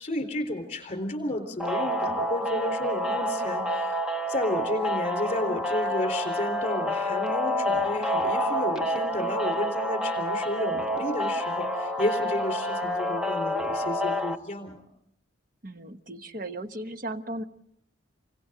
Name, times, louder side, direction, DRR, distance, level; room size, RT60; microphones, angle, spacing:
voice 1, 0.0-4.0 4.3-14.8, left 1 dB, 35° left, 5 dB, 3.9 m, -32 dB
sound 1, 1.6-14.4, equal, 5° right, 0.9 m, -28 dB
voice 2, 15.6-17.4, right 1 dB, 45° right, 8 dB, 1.1 m, -36 dB
30.0 x 25.0 x 3.9 m, 0.73 s
head